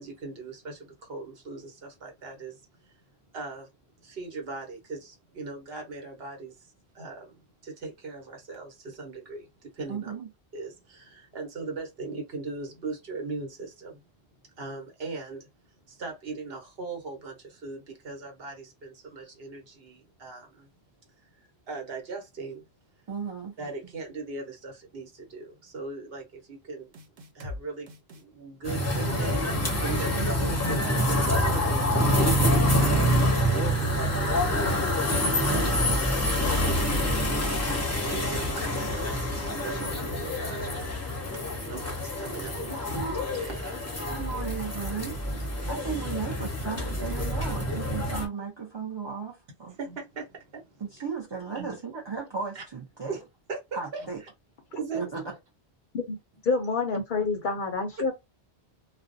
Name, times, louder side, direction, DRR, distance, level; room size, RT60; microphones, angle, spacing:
voice 1, 0.0-3.0 3.3-3.7 4.0-10.1 10.5-14.0 14.4-20.7 21.2-22.7 23.6-27.0 27.3-35.3 36.4-36.7 37.4-44.2 49.7-51.0 51.5-51.8 52.5-52.6 53.1-53.2 53.5-54.3 54.7-55.0, right 3 dB, 65° right, 1.1 m, -40 dB
voice 2, 9.9-10.3 23.1-23.6 30.1-30.6 35.5-36.0 36.5-36.7 44.1-45.2 45.7-49.8 50.8-53.2 53.7-54.2 54.9-55.2, right 5 dB, 35° right, 0.5 m, -35 dB
sound 1, 26.9-27.6 27.9-28.2 28.8-29.4 29.7-30.1, left 2 dB, 85° right, 0.9 m, -40 dB
sound 2, 28.6-48.3, equal, 20° left, 0.5 m, -26 dB
voice 3, 56.4-58.1, left 4 dB, 60° left, 0.6 m, -27 dB
2.4 x 2.0 x 2.5 m
omnidirectional pair, 1.1 m